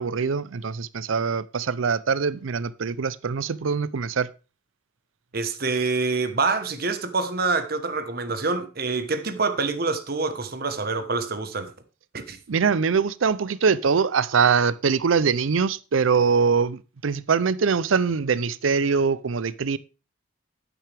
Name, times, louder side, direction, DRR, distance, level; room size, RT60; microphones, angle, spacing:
voice 1, 0.0-4.3 12.5-19.8, right 5 dB, 80° right, 0.5 m, -23 dB
voice 2, 5.3-11.7 12.1-12.4, right 4 dB, 50° right, 1.2 m, -26 dB
10.5 x 9.1 x 3.4 m
head